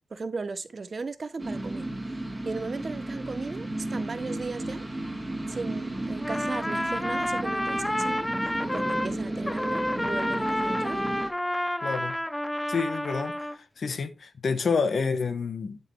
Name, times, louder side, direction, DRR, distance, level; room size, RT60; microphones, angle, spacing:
voice 1, 0.1-1.8 2.4-4.9 5.5-8.3 8.6-11.0, right 4 dB, 50° right, 0.7 m, -36 dB
sound 1, 1.4-11.3, right 1 dB, 15° right, 1.7 m, -33 dB
Trumpet, 6.2-9.1 9.4-13.6, left 1 dB, 10° left, 0.3 m, -30 dB
voice 2, 11.8-12.2 12.7-15.8, left 5 dB, 65° left, 0.8 m, -29 dB
10.5 x 4.6 x 3.1 m
cardioid pair, 70°, 0 cm